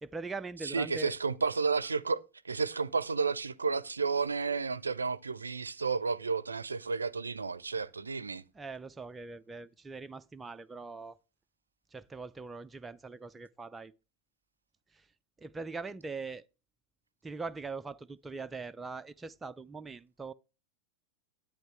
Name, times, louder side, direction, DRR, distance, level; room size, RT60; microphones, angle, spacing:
voice 1, 0.0-1.1 8.5-11.2 11.9-13.9 14.9-15.1 15.4-16.4 17.2-20.3, right 4 dB, 15° right, 0.3 m, -42 dB
voice 2, 0.6-8.4, right 4 dB, 75° right, 0.5 m, -32 dB
10.5 x 8.5 x 3.2 m
figure-of-eight pair, 90°, 0 cm